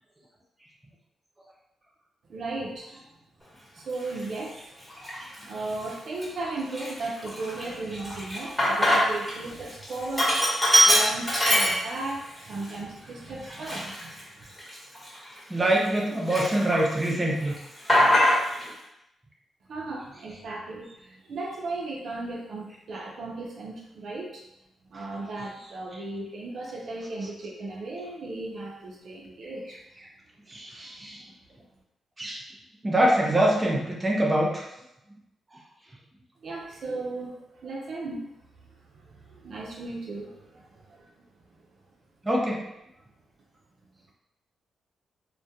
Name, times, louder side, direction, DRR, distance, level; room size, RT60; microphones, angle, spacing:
voice 1, 2.3-3.0 3.7-4.7 5.5-10.4 10.8-14.2 19.7-24.4 24.9-29.8 36.4-38.3 38.9-41.1, right 2 dB, 70° right, -2 dB, 0.5 m, -36 dB
Sink (filling or washing), 4.1-4.2 4.9-5.4 5.8-5.9 6.2-9.3 9.6-12.2 12.6-12.7 13.4-16.0 16.3-17.1 17.3-18.7, equal, 10° left, 0.9 m, -23 dB
voice 2, 15.5-17.5 30.5-31.2 32.2-32.4 32.8-34.6 42.2-42.6, right 1 dB, 20° right, -2 dB, 0.5 m, -24 dB
2.2 x 2.1 x 2.7 m, 0.86 s
cardioid pair, 85°, 0 cm